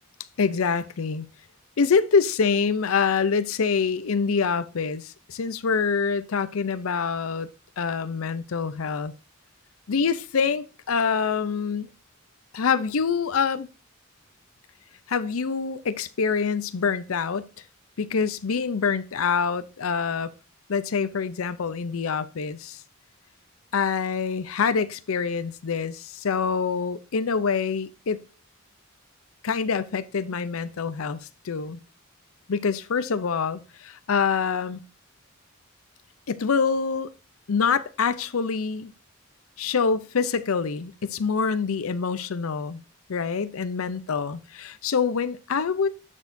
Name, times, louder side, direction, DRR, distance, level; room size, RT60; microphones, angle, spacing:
voice 1, 0.4-1.3 1.8-7.5 7.8-9.1 9.9-11.9 12.5-13.7 15.1-17.5 18.0-20.3 20.7-22.8 23.7-28.2 29.4-31.8 32.5-34.8 36.3-37.1 37.5-38.9 39.6-42.8 43.1-45.9, left 5 dB, 85° left, 0.6 m, -25 dB
11.0 x 6.3 x 2.6 m
head